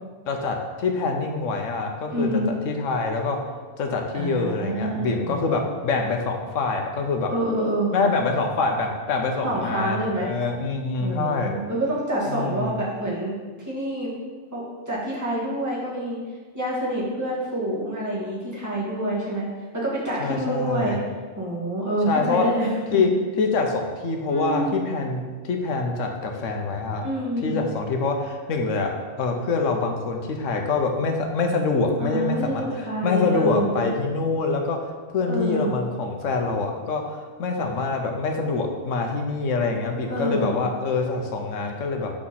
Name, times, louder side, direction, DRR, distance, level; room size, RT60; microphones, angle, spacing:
voice 1, 0.3-2.3 2.6-3.4 3.8-7.3 7.9-11.5 12.3-12.7 20.2-21.0 22.1-22.5 22.9-23.1 23.4-27.0 27.4-34.8 35.1-42.1, left 4 dB, 85° left, 3 dB, 1.2 m, -25 dB
voice 2, 2.1-2.5 4.1-5.6 7.3-7.9 9.4-10.3 11.0-14.1 14.5-16.2 16.5-19.5 19.7-21.0 21.4-23.0 24.3-24.8 27.0-27.6 32.0-33.9 35.3-35.8 40.1-40.6, right 1 dB, 15° right, -7 dB, 1.8 m, -27 dB
6.0 x 3.7 x 5.8 m, 1.4 s
omnidirectional pair, 1.3 m